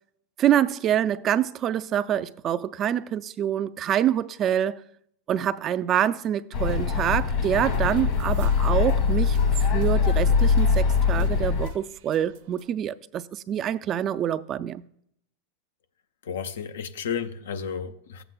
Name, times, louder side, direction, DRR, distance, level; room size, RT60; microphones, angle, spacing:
voice 1, 0.4-4.8 5.3-14.8, right 10 dB, 35° right, 0.3 m, -26 dB
sound 1, 6.5-11.7, left 6 dB, 55° left, 1.6 m, -22 dB
sound 2, 7.7-12.7, right 10 dB, 65° right, 0.7 m, -39 dB
voice 2, 16.2-18.2, left 7 dB, 80° left, 0.6 m, -32 dB
13.5 x 7.8 x 2.2 m
hypercardioid pair, 110°, 0 cm